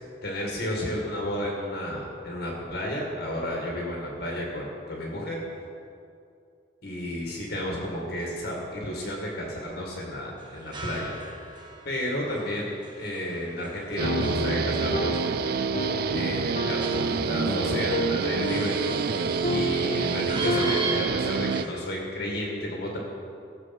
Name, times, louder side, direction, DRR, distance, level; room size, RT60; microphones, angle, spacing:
voice 1, 0.2-5.4 6.8-11.2 11.8-15.6 16.1-18.7 19.5-23.0, left 1 dB, 55° left, -2 dB, 2.0 m, -32 dB
sound 1, 10.4-21.7, right 2 dB, 25° right, 1.4 m, -40 dB
sound 2, 14.0-21.4, left 1 dB, 35° left, 0.5 m, -32 dB
Guitar, 14.0-21.7, right 6 dB, 50° right, 0.3 m, -27 dB
15.5 x 7.3 x 6.0 m, 2.5 s
head